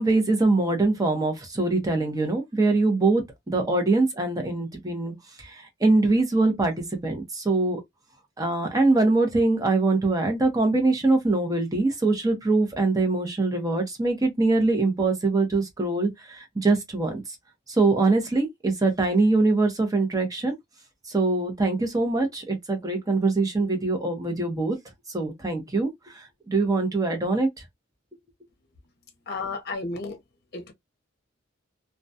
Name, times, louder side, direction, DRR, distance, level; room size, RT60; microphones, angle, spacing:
voice 1, 0.0-5.1 5.4-6.7 7.0-7.8 8.4-17.2 17.7-20.5 21.1-24.8 25.1-27.5, right 3 dB, 20° right, 0.7 m, -23 dB
voice 2, 29.3-30.2 30.5-30.7, left 3 dB, 55° left, 0.7 m, -32 dB
2.3 x 2.2 x 2.6 m
head